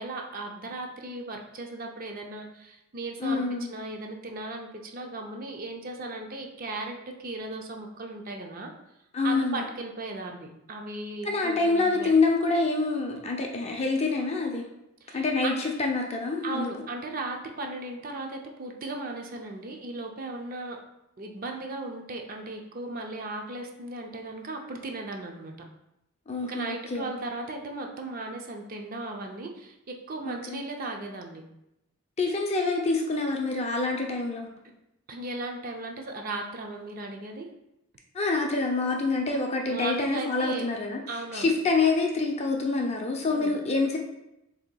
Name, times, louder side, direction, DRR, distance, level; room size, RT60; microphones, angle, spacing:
voice 1, 0.0-8.7 9.2-12.1 15.0-15.6 16.4-20.8 21.2-25.5 26.4-31.4 35.1-37.5 39.7-40.7 41.1-41.5 43.3-43.5, right 2 dB, 40° right, 2 dB, 0.5 m, -36 dB
voice 2, 3.2-3.7 9.1-9.6 11.2-14.6 15.1-16.7 26.3-27.1 30.2-30.6 32.2-34.5 38.1-41.0 41.3-44.0, left 3 dB, 30° left, 2 dB, 0.5 m, -26 dB
6.6 x 2.8 x 2.2 m, 0.87 s
head